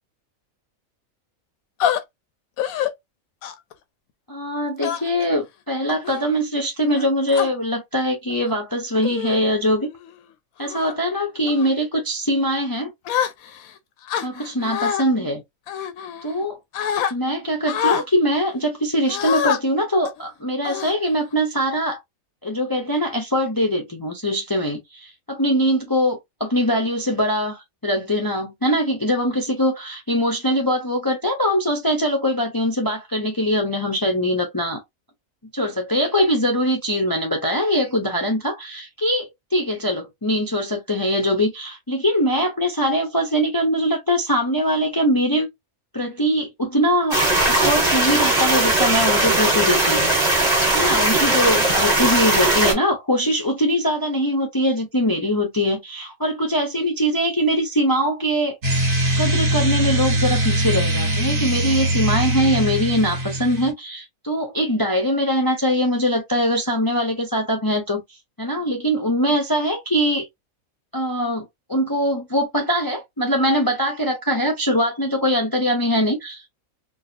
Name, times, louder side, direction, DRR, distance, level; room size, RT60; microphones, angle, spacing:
sound 1, 1.8-2.0 2.6-2.9 3.4-3.7 4.8-5.3 5.9-6.2 6.9-7.5 8.3-8.5 9.0-9.4 9.9-10.1 10.6-10.9 11.5-11.7 13.1-13.7 14.1-15.0 15.7-16.4 16.7-17.1 17.7-18.1 19.1-19.6 20.1-20.2 20.6-21.3, left 9 dB, 90° left, 1.1 m, -25 dB
voice 1, 4.3-9.9 10.6-12.9 14.2-15.4 16.2-16.6 17.1-22.0 22.4-34.8 35.5-45.5 45.9-50.1 50.7-58.5 59.2-68.0 68.4-70.3 70.9-76.5, equal, 25° left, 0.5 m, -22 dB
sound 2, 47.1-52.7, right 2 dB, 30° right, 1.5 m, -19 dB
sound 3, 58.6-63.7, right 1 dB, 60° right, 1.7 m, -21 dB
4.1 x 2.3 x 2.6 m
omnidirectional pair, 1.4 m